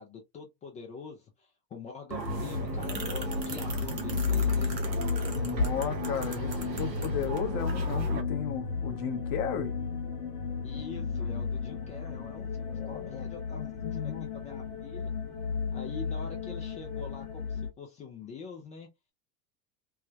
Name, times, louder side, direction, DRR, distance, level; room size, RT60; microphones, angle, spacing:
voice 1, 0.0-4.8 10.6-13.6 13.9-15.1 15.7-18.9, left 5 dB, 15° left, 0.3 m, -45 dB
sound 1, 2.1-8.2, equal, 90° right, 0.9 m, -33 dB
sound 2, 2.3-17.7, left 5 dB, 55° left, 1.2 m, -35 dB
voice 2, 5.3-9.7 12.7-13.2 13.5-14.3, left 8 dB, 40° left, 0.9 m, -35 dB
3.3 x 2.0 x 2.3 m
figure-of-eight pair, 85°, 49 cm